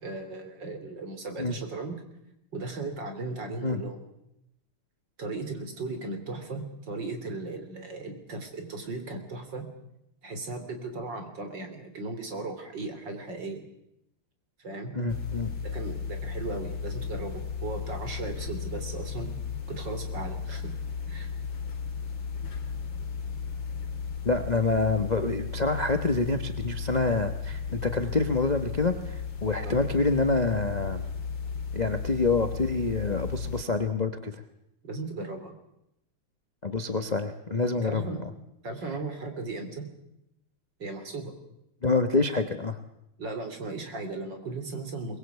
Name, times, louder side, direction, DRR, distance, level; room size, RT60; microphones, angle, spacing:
voice 1, 0.0-1.9 2.5-4.0 5.2-9.7 10.2-13.6 14.6-14.9 15.6-19.3 19.7-20.7 21.1-21.3 29.6-29.8 34.8-35.5 37.8-38.2 38.6-39.9 40.8-41.3 43.2-45.2, right 3 dB, 55° right, 6 dB, 3.9 m, -36 dB
voice 2, 14.9-15.5 24.2-31.0 31.7-34.3 36.6-38.3 41.8-42.8, left 3 dB, 25° left, 8 dB, 0.9 m, -27 dB
sound 1, 15.1-33.6, left 6 dB, 60° left, 2.8 m, -35 dB
23.0 x 20.5 x 8.3 m, 0.84 s
omnidirectional pair, 2.4 m